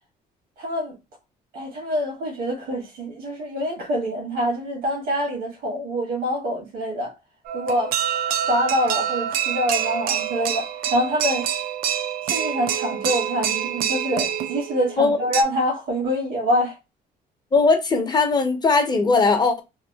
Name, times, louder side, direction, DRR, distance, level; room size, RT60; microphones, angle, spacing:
voice 1, 0.6-1.0 1.5-7.1 7.5-7.9 8.5-11.5 12.2-16.7, equal, 80° right, 1.3 m, -25 dB
sound 1, 7.5-15.4, right 9 dB, 60° right, 0.4 m, -26 dB
voice 2, 17.5-19.6, left 4 dB, 25° left, 0.7 m, -19 dB
2.9 x 2.2 x 2.2 m
cardioid pair, 110°, 17 cm